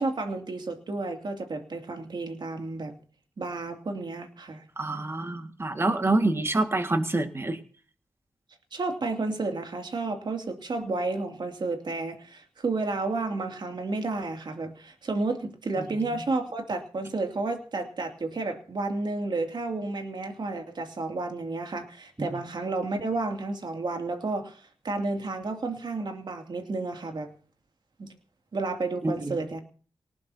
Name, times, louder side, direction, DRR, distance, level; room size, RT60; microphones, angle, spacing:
voice 1, 0.0-2.9 3.4-4.6 8.7-27.3 28.0-28.1 28.5-29.6, right 3 dB, 55° right, 5 dB, 2.6 m, -31 dB
voice 2, 4.8-7.6 22.2-22.4 29.0-29.4, right 2 dB, 25° right, 7 dB, 1.9 m, -27 dB
20.5 x 19.0 x 2.8 m, 0.41 s
wide cardioid pair, 90°, 9 cm